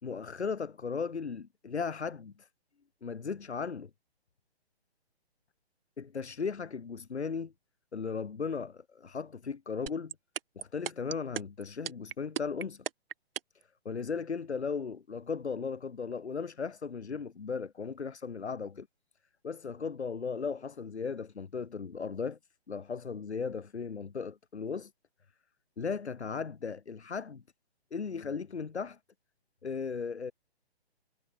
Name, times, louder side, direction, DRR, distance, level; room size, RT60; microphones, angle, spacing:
voice 1, 0.0-2.5 3.0-3.9 6.0-7.5 7.9-10.1 10.6-12.8 13.8-18.9 19.4-22.4 22.7-24.9 25.8-27.4 27.9-29.0 29.6-30.3, left 5 dB, 85° left, 0.9 m, -36 dB
sound 1, 9.9-13.6, right 9 dB, 60° right, 0.6 m, -35 dB
figure-of-eight pair, 135°, 32 cm